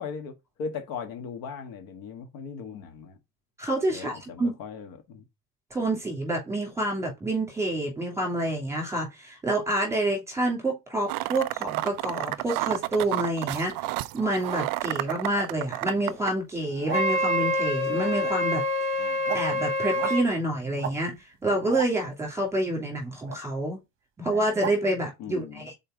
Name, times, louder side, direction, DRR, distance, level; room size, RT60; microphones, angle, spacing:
voice 1, 0.0-3.2 3.9-5.2 25.2-25.7, left 6 dB, 60° left, 1.6 m, -38 dB
voice 2, 3.6-4.5 5.7-13.7 14.1-18.6 19.0-23.8 24.2-25.7, right 1 dB, 5° right, 2.8 m, -28 dB
sound 1, 11.1-16.3, right 18 dB, 55° right, 0.5 m, -31 dB
sound 2, 16.6-17.2 17.9-18.6 18.9-19.5 19.9-20.3 20.7-21.0 21.4-21.9 23.2-23.4 24.3-24.8, right 9 dB, 30° right, 0.9 m, -36 dB
Wind instrument woodwind instrument, 16.9-20.3, left 1 dB, 30° left, 1.3 m, -26 dB
5.5 x 4.4 x 5.0 m
cardioid pair, 155°, 41 cm